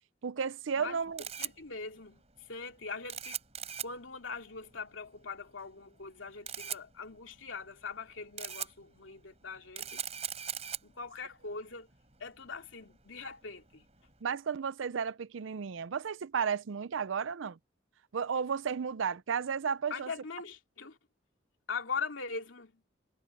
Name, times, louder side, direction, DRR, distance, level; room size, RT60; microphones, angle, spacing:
voice 1, 0.2-1.2 14.2-17.6 18.1-20.1, right 6 dB, 80° right, 0.5 m, -33 dB
Camera, 0.8-14.2, right 9 dB, 35° right, 5.6 m, -43 dB
voice 2, 1.4-3.4 3.8-10.0 10.8-11.9 12.2-13.8 19.9-21.0 21.7-22.8, left 5 dB, 85° left, 2.7 m, -41 dB
head